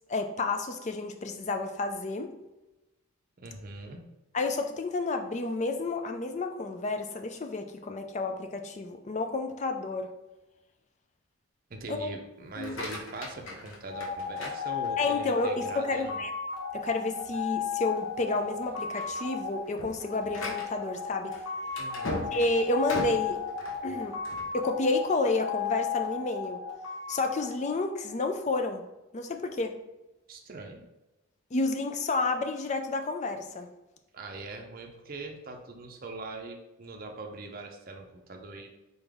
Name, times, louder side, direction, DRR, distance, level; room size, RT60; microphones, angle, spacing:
voice 1, 0.1-2.3 4.3-10.1 11.9-12.1 12.6-12.8 15.0-16.3 16.7-21.3 22.3-23.4 23.8-24.2 24.5-26.6 27.1-28.8 29.1-29.7 31.5-33.7, left 3 dB, 30° left, 6 dB, 0.4 m, -30 dB
voice 2, 3.4-4.0 11.7-16.2 21.8-22.2 30.3-30.8 34.1-38.7, right 3 dB, 40° right, 2 dB, 0.6 m, -42 dB
sound 1, 12.5-15.3 15.8-16.2 16.7-16.8 17.2-17.4 18.0-18.3 18.7-24.5, left 2 dB, 60° left, 1.0 m, -39 dB
sound 2, 13.9-28.3, left 7 dB, 80° left, 1.1 m, -35 dB
3.9 x 3.8 x 3.4 m, 1.0 s
head